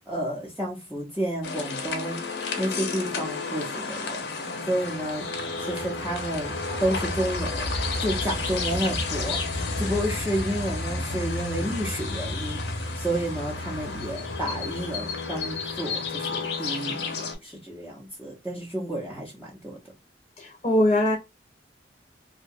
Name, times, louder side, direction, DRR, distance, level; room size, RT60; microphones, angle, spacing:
voice 1, 0.1-2.2 2.6-4.2 4.6-5.3 5.6-6.5 6.8-7.7 8.0-19.8, right 1 dB, 10° right, 0.6 m, -31 dB
sound 1, 1.4-17.3, left 3 dB, 65° left, 0.7 m, -31 dB
voice 2, 20.4-21.2, left 1 dB, 30° left, 0.7 m, -21 dB
2.7 x 2.1 x 2.6 m
head